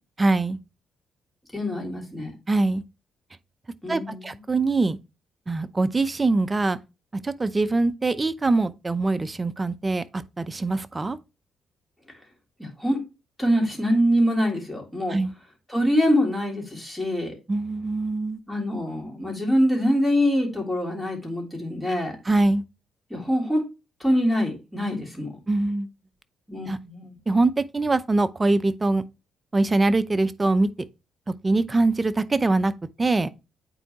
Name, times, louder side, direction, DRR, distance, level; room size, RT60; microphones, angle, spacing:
voice 1, 0.2-0.6 2.5-2.8 3.9-5.0 5.5-6.8 7.2-11.2 15.1-15.3 17.5-18.4 22.3-22.6 25.5-25.9 26.7-26.8 27.3-29.0 29.5-30.7 31.4-32.7 33.0-33.3, right 2 dB, 20° right, 0.6 m, -23 dB
voice 2, 1.5-2.3 3.8-4.4 12.6-13.0 13.4-15.2 15.7-17.3 18.5-22.1 23.1-23.6 24.0-25.3 26.5-27.2, equal, 5° left, 3.3 m, -24 dB
8.9 x 4.5 x 2.9 m
cardioid pair, 90°, 0 cm